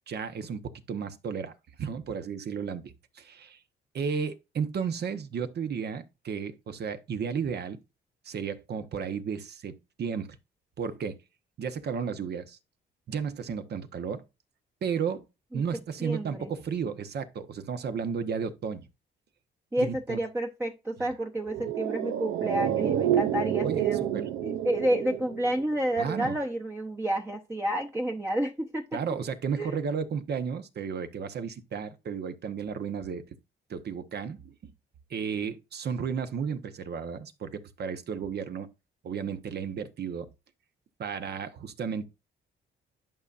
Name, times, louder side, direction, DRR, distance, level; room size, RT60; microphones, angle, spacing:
voice 1, 0.1-1.5 1.8-3.6 3.9-7.8 8.2-10.4 10.8-11.2 11.6-12.6 13.1-14.2 14.8-15.2 15.5-18.9 19.8-20.2 21.6-21.7 23.6-24.2 26.0-26.4 28.9-33.2 33.7-34.7 35.1-38.7 39.0-40.3 41.0-42.1, right 6 dB, 55° right, 1.1 m, -33 dB
voice 2, 16.0-16.5 19.7-28.9 29.6-29.7, right 1 dB, 10° right, 0.9 m, -30 dB
sound 1, 21.4-26.0 26.3-26.4, right 10 dB, 85° right, 0.6 m, -29 dB
11.0 x 5.4 x 2.5 m
cardioid pair, 90°, 20 cm